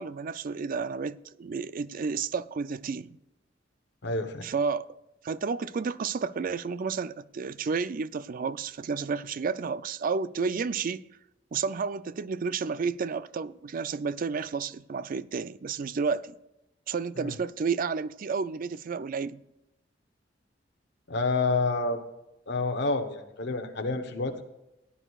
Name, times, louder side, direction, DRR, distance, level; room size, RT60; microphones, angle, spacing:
voice 1, 0.0-3.1 4.4-4.9 5.2-11.0 11.5-16.4 16.9-19.4, right 5 dB, 50° right, 0.4 m, -31 dB
voice 2, 4.0-4.5 17.2-17.4 21.1-22.0 22.5-24.4, left 3 dB, 65° left, 0.9 m, -28 dB
17.0 x 10.0 x 2.4 m
head